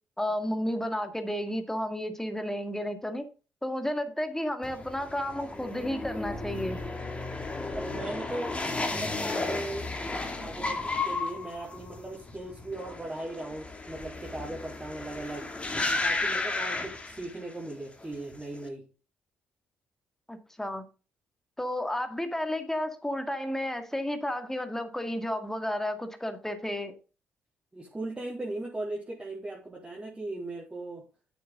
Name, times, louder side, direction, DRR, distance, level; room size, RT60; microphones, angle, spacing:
voice 1, 0.2-3.3 3.6-6.8 20.3-20.8 21.6-26.9, left 1 dB, 10° left, 8 dB, 2.1 m, -32 dB
sound 1, 4.6-17.7 18.0-18.6, left 3 dB, 25° left, 2.5 m, -34 dB
voice 2, 7.7-8.6 8.9-9.9 10.3-15.5 16.0-18.8 27.7-31.0, right 2 dB, 20° right, -4 dB, 3.7 m, -38 dB
9.3 x 8.0 x 3.8 m, 0.34 s
supercardioid pair, 70°, 5 cm